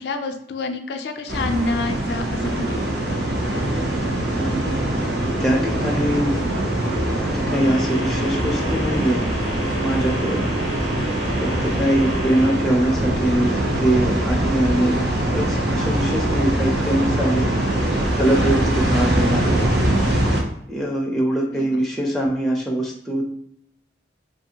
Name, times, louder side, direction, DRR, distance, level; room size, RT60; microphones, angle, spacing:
voice 1, 0.0-2.9 19.1-19.4 21.5-21.7, left 2 dB, 65° left, 7 dB, 0.4 m, -28 dB
sound 1, 1.3-20.4, right 1 dB, 70° right, 0.7 m, -22 dB
voice 2, 5.4-6.3 7.2-9.2 9.7-10.4 11.6-13.5 13.8-15.0 15.3-17.5 18.2-19.6 20.7-23.3, right 1 dB, ahead, -2 dB, 0.4 m, -22 dB
sound 2, 7.5-12.5, equal, 35° right, 0.6 m, -35 dB
2.9 x 2.5 x 2.7 m, 0.71 s
head